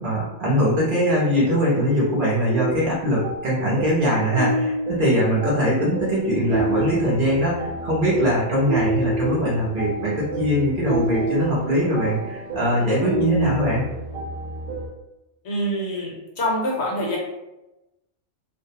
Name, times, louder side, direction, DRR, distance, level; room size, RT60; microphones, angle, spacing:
voice 1, 0.0-13.8, equal, 50° right, -7 dB, 0.8 m, -22 dB
sound 1, 2.5-14.9, right 1 dB, 70° right, 0.3 m, -29 dB
voice 2, 15.4-17.2, equal, 65° left, -3 dB, 0.9 m, -25 dB
2.5 x 2.1 x 2.7 m, 0.96 s
omnidirectional pair, 1.4 m